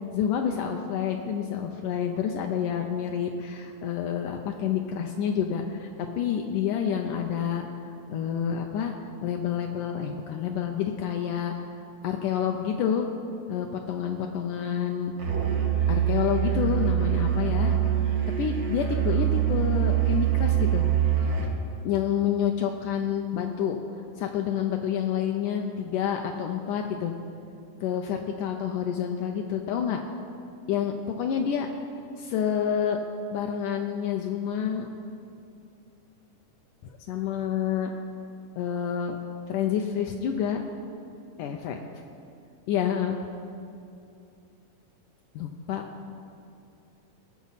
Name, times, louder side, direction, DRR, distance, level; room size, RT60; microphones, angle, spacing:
voice 1, 0.1-5.9 6.2-8.9 9.2-11.5 12.0-13.1 13.5-15.1 15.9-17.8 18.4-20.8 21.8-23.8 24.2-27.1 27.8-30.0 30.7-31.7 32.2-33.0 33.3-34.9 36.8-37.9 38.6-39.2 39.5-40.6 41.4-41.8 42.7-43.2 45.4-45.8, left 8 dB, 80° left, 3 dB, 2.0 m, -28 dB
Musical instrument, 15.2-21.6, right 11 dB, 65° right, 0.9 m, -24 dB
18.5 x 7.2 x 5.7 m, 2.7 s
omnidirectional pair, 4.1 m